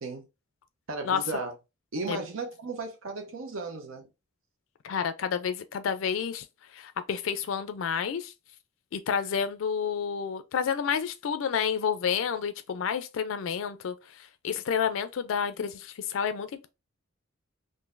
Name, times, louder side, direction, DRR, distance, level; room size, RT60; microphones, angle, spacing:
voice 1, 0.9-1.5 1.9-4.1, right 3 dB, 80° right, 0.7 m, -35 dB
voice 2, 4.8-6.5 6.7-8.3 8.9-16.7, left 7 dB, 75° left, 0.4 m, -30 dB
3.8 x 2.6 x 2.5 m
head